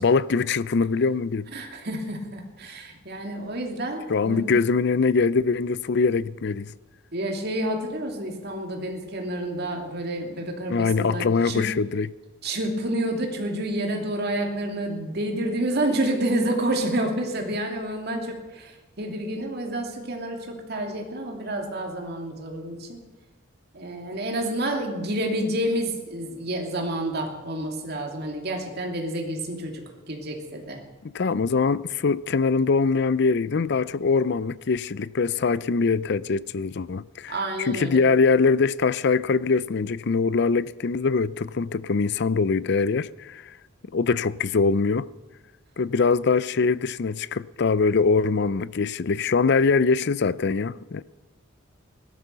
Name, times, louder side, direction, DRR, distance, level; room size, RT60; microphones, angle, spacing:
voice 1, 0.0-1.5 4.1-6.7 10.7-12.1 31.1-43.5 43.9-45.1 45.8-51.0, left 4 dB, 55° left, 0.5 m, -23 dB
voice 2, 1.5-4.6 7.1-11.7 12.4-23.0 23.7-29.8 30.1-30.8 37.3-38.0, right 1 dB, 55° right, 2.7 m, -29 dB
17.0 x 12.5 x 6.8 m
head